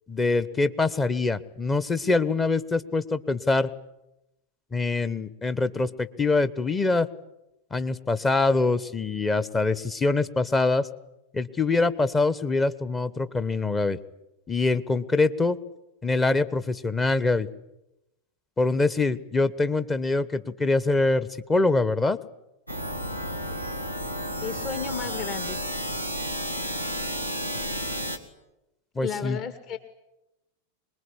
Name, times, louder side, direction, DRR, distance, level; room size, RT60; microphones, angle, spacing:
voice 1, 0.1-3.7 4.7-7.1 7.7-10.9 11.3-14.0 14.5-15.6 16.0-17.5 18.6-22.2 28.9-29.4, left 3 dB, 15° left, 14 dB, 1.2 m, -24 dB
sound 1, 22.7-28.2, equal, 90° left, 2.2 m, -32 dB
voice 2, 24.4-25.6 29.0-29.8, left 7 dB, 35° left, 8 dB, 2.1 m, -33 dB
25.0 x 21.0 x 9.9 m, 0.93 s
figure-of-eight pair, 90°, 0 cm